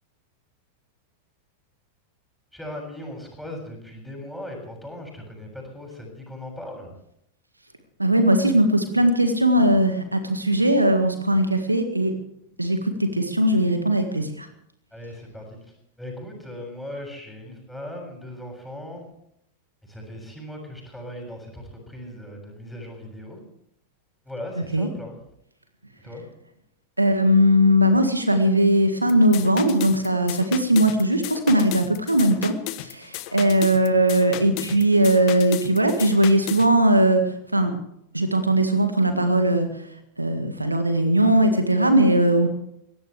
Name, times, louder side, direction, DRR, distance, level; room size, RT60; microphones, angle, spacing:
voice 1, 2.5-6.9 14.9-19.1 19.8-23.4 24.2-25.2 26.0-26.2, left 1 dB, ahead, 0 dB, 7.2 m, -38 dB
voice 2, 8.0-12.1 12.6-14.5 24.7-24.9 27.0-37.7 38.1-39.9 40.2-42.5, right 1 dB, 85° right, 7 dB, 1.8 m, -19 dB
sound 1, 29.1-36.7, left 16 dB, 45° left, 1.1 m, -35 dB
22.5 x 17.0 x 3.4 m, 0.75 s
figure-of-eight pair, 90°, 0 cm